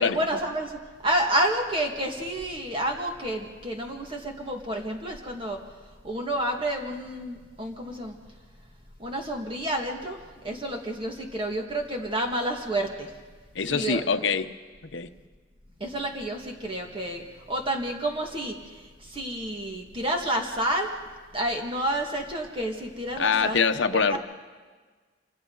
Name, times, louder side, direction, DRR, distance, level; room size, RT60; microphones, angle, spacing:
voice 1, 0.0-5.6 6.0-8.2 9.0-13.1 13.7-14.0 15.8-20.9 21.3-23.6 24.1-24.2, right 1 dB, 25° right, 1 dB, 1.9 m, -29 dB
voice 2, 13.5-14.5 14.9-15.1 23.2-24.2, left 5 dB, 65° left, 8 dB, 0.9 m, -24 dB
27.5 x 25.5 x 4.0 m, 1.4 s
head